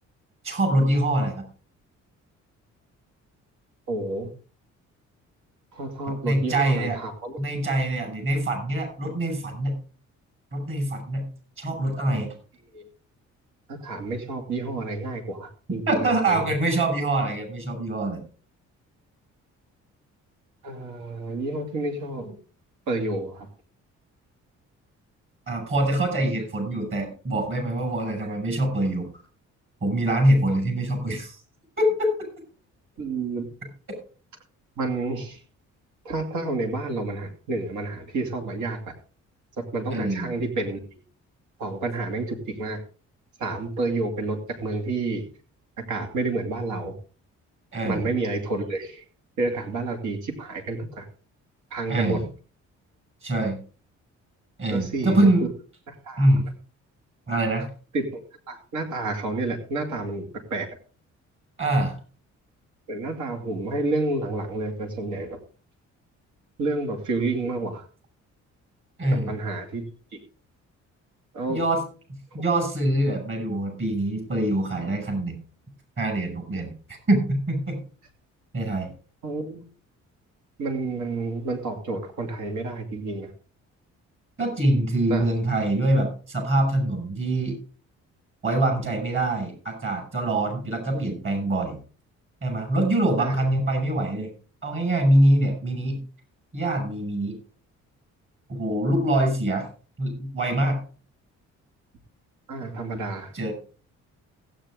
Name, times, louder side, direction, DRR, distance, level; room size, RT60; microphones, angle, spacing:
voice 1, 0.4-1.4 6.2-7.0 7.4-9.8 10.5-11.3 11.6-12.3 15.9-18.2 25.5-29.1 29.8-31.4 31.8-32.1 39.9-40.3 47.7-48.1 51.9-52.2 53.2-53.6 54.6-55.5 56.2-56.5 57.3-57.7 61.6-62.0 69.0-69.3 71.5-71.8 72.1-75.4 76.0-77.8 78.5-78.9 84.4-87.6 88.4-91.8 92.4-94.3 94.6-96.0 96.5-97.3 98.5-99.6 100.0-100.8 103.3-103.5, right 1 dB, 45° right, 4 dB, 6.4 m, -24 dB
voice 2, 3.9-4.3 5.7-7.4 12.7-12.8 13.7-15.8 16.3-16.4 20.6-22.4 22.9-23.5 33.0-33.4 34.8-35.4 36.0-38.8 39.6-40.8 41.6-42.8 43.4-45.2 45.8-47.0 47.9-49.0 49.4-51.1 51.7-52.2 54.7-55.3 55.9-56.3 57.9-60.7 62.9-65.4 66.6-67.8 69.3-69.8 71.3-71.6 79.2-79.7 80.6-83.3 85.1-85.2 90.9-91.1 93.2-93.3 102.5-103.3, right 3 dB, 75° right, 4 dB, 2.6 m, -29 dB
16.5 x 9.0 x 3.7 m, 0.39 s
cardioid pair, 90°, 30 cm